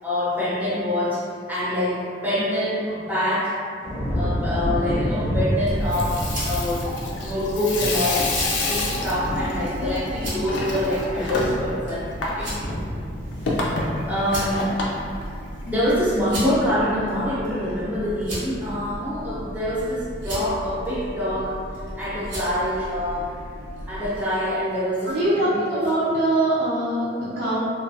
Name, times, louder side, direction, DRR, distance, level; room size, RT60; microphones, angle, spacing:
voice 1, 0.0-3.5 4.1-12.7 13.4-13.7 14.1-14.6 15.6-21.6 22.0-23.4 23.9-25.8, left 1 dB, 10° right, -9 dB, 0.6 m, -26 dB
sound 1, 3.8-15.1 15.6-16.0, equal, 35° left, 0.6 m, -30 dB
sound 2, 5.5-24.2, equal, 85° right, 1.1 m, -35 dB
Water tap faucet / Sink (filling or washing), 5.7-15.9, left 2 dB, 85° left, 0.4 m, -29 dB
voice 2, 25.0-27.6, right 1 dB, 60° right, -10 dB, 0.5 m, -23 dB
2.2 x 2.2 x 2.6 m, 2.3 s
head